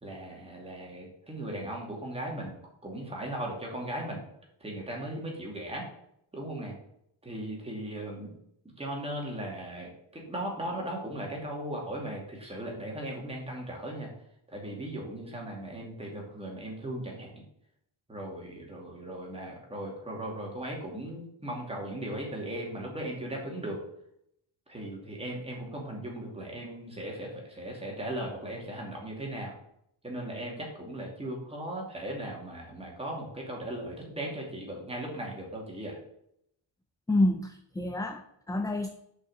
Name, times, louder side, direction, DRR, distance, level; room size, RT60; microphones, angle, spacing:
voice 1, 0.0-4.3 4.6-5.9 6.3-6.8 7.2-8.3 8.8-14.1 14.5-17.3 18.1-23.8 24.7-29.6 30.0-36.0, right 1 dB, 10° right, -2 dB, 2.5 m, -37 dB
voice 2, 37.1-38.9, left 1 dB, 10° left, 6 dB, 0.3 m, -28 dB
6.5 x 5.7 x 6.6 m, 0.75 s
cardioid pair, 150°, 47 cm